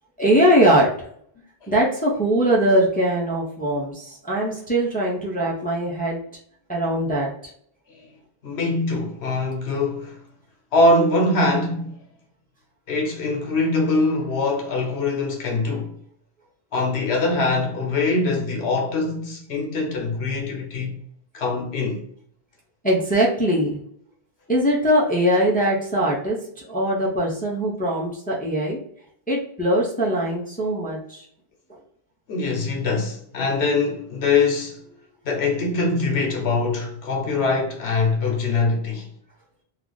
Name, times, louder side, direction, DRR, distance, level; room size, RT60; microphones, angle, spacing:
voice 1, 0.2-0.9 1.7-6.2 6.7-7.3 22.8-23.8 24.5-28.8 29.3-31.2, right 1 dB, 10° left, 0.5 m, -21 dB
voice 2, 8.4-10.2 10.7-12.0 12.9-16.0 16.7-21.0 21.3-22.0 32.3-34.8 35.2-39.1, left 3 dB, 80° left, 1.0 m, -23 dB
2.4 x 2.3 x 3.8 m
omnidirectional pair, 1.1 m